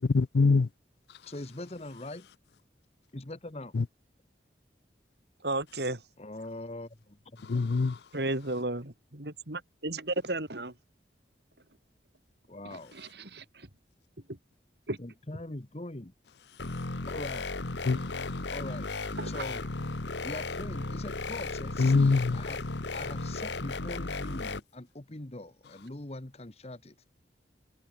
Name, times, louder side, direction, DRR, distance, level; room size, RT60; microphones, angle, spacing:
voice 1, 0.0-0.7 3.7-3.8 7.4-8.0 17.8-18.4 21.8-22.4, left 4 dB, 65° left, 0.5 m, -24 dB
voice 2, 1.2-2.3 3.1-3.7 6.2-7.6 12.5-12.9 15.0-16.1 17.1-17.5 18.5-18.9 19.2-19.6 20.2-22.6 22.9-26.9, left 1 dB, 35° left, 1.2 m, -42 dB
voice 3, 5.4-6.0 8.1-10.7 13.3-13.7 14.3-14.4 14.9-15.0 19.2-19.5, right 2 dB, 65° right, 3.4 m, -33 dB
sound 1, 16.6-24.6, left 3 dB, 85° left, 1.5 m, -35 dB
head